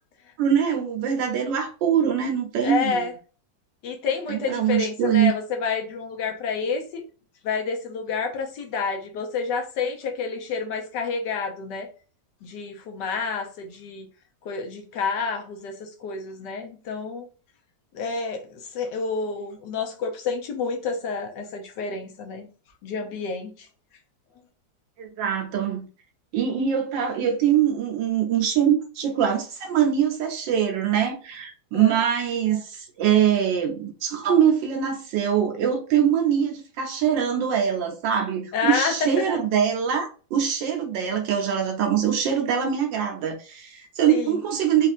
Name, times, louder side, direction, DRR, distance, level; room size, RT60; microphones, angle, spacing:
voice 1, 0.4-3.1 4.3-5.3 25.0-25.8 26.3-44.9, right 8 dB, 90° right, 1.6 m, -23 dB
voice 2, 2.6-3.1 3.8-7.0 7.4-11.9 12.4-14.1 14.4-17.2 17.9-22.5 22.8-23.7 31.7-32.0 38.5-39.2 44.1-44.4, left 5 dB, 75° left, 1.3 m, -29 dB
4.2 x 2.6 x 2.5 m
omnidirectional pair, 1.9 m